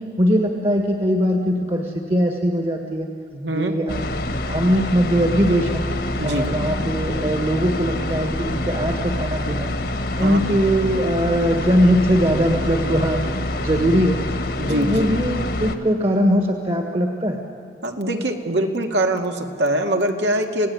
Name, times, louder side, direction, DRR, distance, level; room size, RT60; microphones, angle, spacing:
voice 1, 0.2-3.1 3.5-5.8 6.2-9.7 10.2-13.2 13.6-14.2 14.7-17.4, equal, 35° right, 3 dB, 1.6 m, -21 dB
voice 2, 3.3-3.8 6.2-6.6 10.2-10.4 14.6-15.1 17.8-20.7, right 1 dB, 80° right, 3 dB, 2.2 m, -23 dB
sound 1, 3.9-15.8, left 1 dB, 60° left, 1.6 m, -26 dB
27.5 x 17.5 x 9.5 m, 2.4 s
head